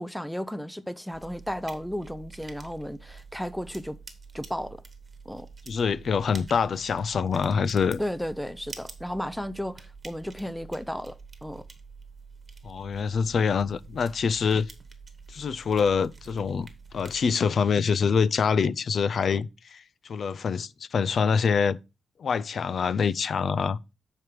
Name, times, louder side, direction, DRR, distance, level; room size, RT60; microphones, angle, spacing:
voice 1, 0.0-4.0 4.3-4.8 5.3-5.5 8.0-11.7, equal, ahead, 0.5 m, -34 dB
sound 1, 1.1-17.4, right 4 dB, 25° right, 1.3 m, -47 dB
voice 2, 5.7-8.0 12.6-14.7 15.3-16.7 16.9-21.8 22.2-23.8, left 6 dB, 55° left, 0.4 m, -25 dB
7.5 x 4.7 x 4.7 m
wide cardioid pair, 135°, 0 cm